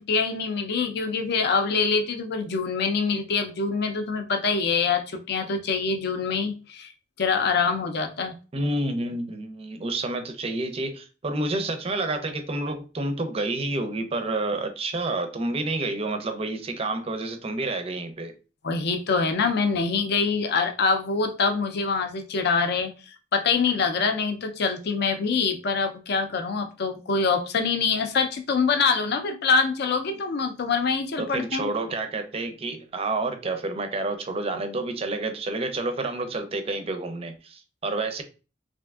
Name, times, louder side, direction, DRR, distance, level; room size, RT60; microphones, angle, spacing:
voice 1, 0.0-6.9 7.2-8.3 18.6-22.9 23.3-31.7, left 5 dB, 60° left, 0.5 m, -25 dB
voice 2, 8.5-18.3 31.2-38.2, right 2 dB, 30° right, 0.4 m, -29 dB
3.4 x 2.6 x 2.3 m
head